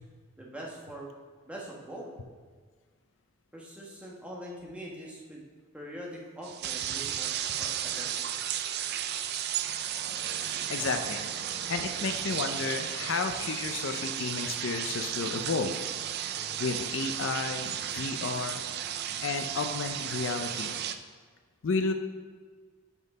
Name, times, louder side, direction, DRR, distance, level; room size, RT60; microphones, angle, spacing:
voice 1, 0.4-1.1 1.4-2.1 3.5-5.4 5.7-8.4 16.3-16.6, equal, 5° right, -3 dB, 1.2 m, -43 dB
sound 1, 6.4-21.0, right 10 dB, 50° right, 0.3 m, -34 dB
voice 2, 10.7-11.3 11.7-15.7 16.6-18.6 19.2-20.8 21.6-21.9, left 4 dB, 60° left, 6 dB, 0.5 m, -32 dB
6.0 x 5.4 x 5.2 m, 1.5 s
head